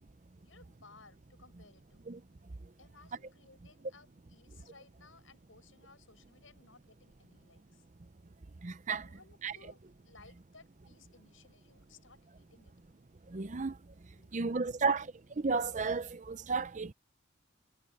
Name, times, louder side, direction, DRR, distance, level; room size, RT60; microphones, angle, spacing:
voice 1, 0.4-2.0 2.8-7.8 9.0-12.7 14.2-15.0, left 3 dB, 80° left, 7.5 m, -60 dB
voice 2, 8.6-9.0 9.4-9.5 13.3-13.7 14.3-15.0 15.4-16.9, right 4 dB, 35° right, 0.6 m, -32 dB
head